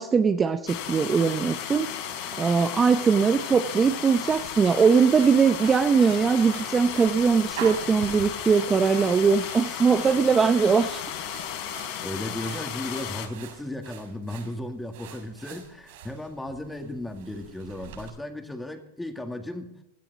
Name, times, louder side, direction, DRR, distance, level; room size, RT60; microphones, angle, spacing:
voice 1, 0.0-1.9 2.4-11.1, right 5 dB, 20° right, 8 dB, 0.7 m, -21 dB
sound 1, 0.7-13.3, left 9 dB, 55° left, 4.0 m, -34 dB
sound 2, 4.3-18.1, right 8 dB, 60° right, 6.8 m, -45 dB
voice 2, 12.0-19.7, left 1 dB, 5° left, 4 dB, 2.1 m, -35 dB
17.5 x 13.0 x 4.1 m, 0.87 s
hypercardioid pair, 125°, 0 cm